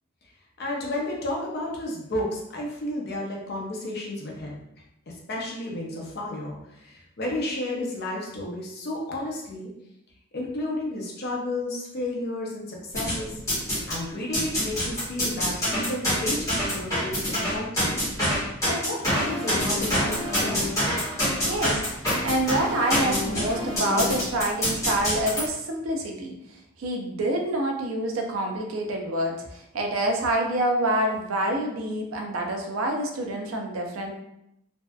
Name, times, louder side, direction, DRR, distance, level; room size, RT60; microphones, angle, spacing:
voice 1, 0.6-4.6 5.1-9.7 10.3-13.4 13.9-18.1 18.6-20.7, left 1 dB, 50° left, -2 dB, 0.6 m, -32 dB
sound 1, 12.9-14.0 14.3-25.4, equal, 15° left, 1.0 m, -26 dB
voice 2, 21.4-21.8 22.2-26.3 26.8-34.1, right 1 dB, 75° right, 2 dB, 0.5 m, -27 dB
2.6 x 2.3 x 2.2 m, 0.81 s
head